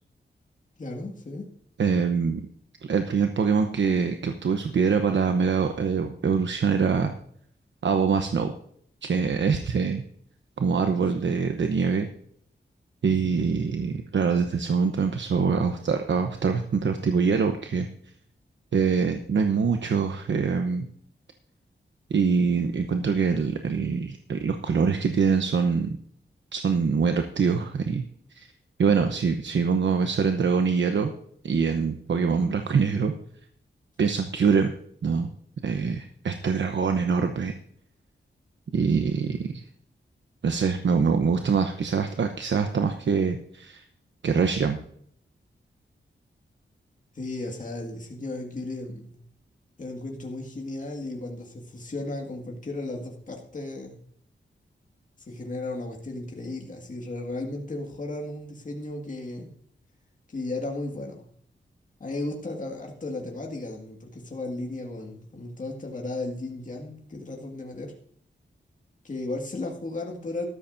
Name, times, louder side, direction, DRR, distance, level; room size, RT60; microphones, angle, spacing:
voice 1, 0.8-1.5 13.0-13.4 47.1-49.2 49.8-54.0 55.3-59.5 60.3-61.2 62.0-67.9 69.0-70.4, left 2 dB, 40° left, 0 dB, 2.0 m, -35 dB
voice 2, 1.8-2.5 2.9-7.1 7.8-8.5 9.0-10.0 10.6-12.1 13.0-17.9 18.7-20.9 22.1-25.9 26.5-28.0 28.4-28.5 28.8-31.1 31.4-33.1 34.0-34.7 35.0-35.3 35.6-37.5 38.7-39.6 40.4-43.8 44.2-44.8, right 5 dB, 70° right, 6 dB, 0.9 m, -24 dB
13.5 x 13.0 x 2.7 m, 0.65 s
wide cardioid pair, 135°, 19 cm